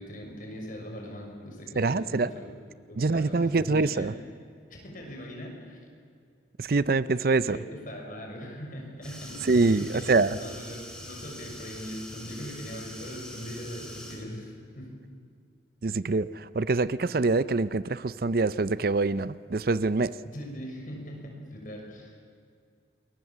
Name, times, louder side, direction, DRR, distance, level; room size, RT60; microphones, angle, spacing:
voice 1, 0.0-2.5 2.9-4.1 4.7-5.8 7.5-14.9 20.3-22.2, equal, 45° left, 0 dB, 6.5 m, -40 dB
voice 2, 1.8-2.3 3.0-4.1 6.6-7.6 9.4-10.4 15.8-20.2, right 3 dB, 55° right, 16 dB, 0.6 m, -25 dB
sound 1, 9.0-14.1, left 1 dB, 5° left, 4.4 m, -43 dB
28.0 x 22.0 x 7.4 m, 2.3 s
head